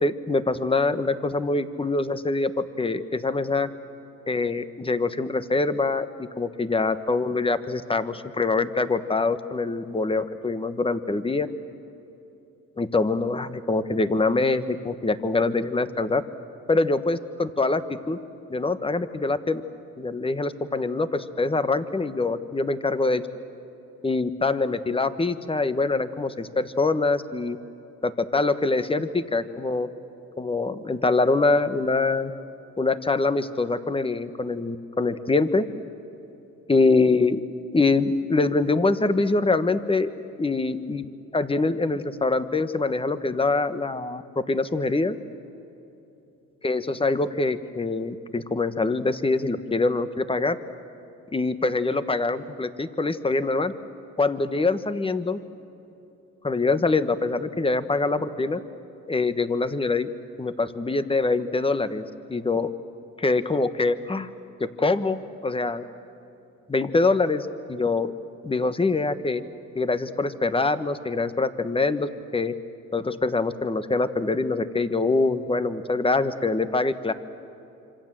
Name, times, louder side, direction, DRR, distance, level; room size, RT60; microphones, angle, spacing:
voice 1, 0.0-2.5 2.8-3.7 4.3-11.5 12.8-16.2 16.7-18.2 18.5-19.6 20.0-23.2 24.0-27.6 28.0-29.9 30.4-32.3 32.8-35.7 36.7-37.4 37.7-40.1 40.4-41.1 41.3-45.2 46.6-50.6 51.3-53.7 54.2-55.4 56.4-58.6 59.1-60.1 60.4-62.7 63.2-64.3 64.6-65.8 66.7-68.1 68.4-69.4 69.7-72.5 72.9-77.1, left 3 dB, 20° left, 11 dB, 1.3 m, -24 dB
26.5 x 25.5 x 7.7 m, 3.0 s
cardioid pair, 90°, 30 cm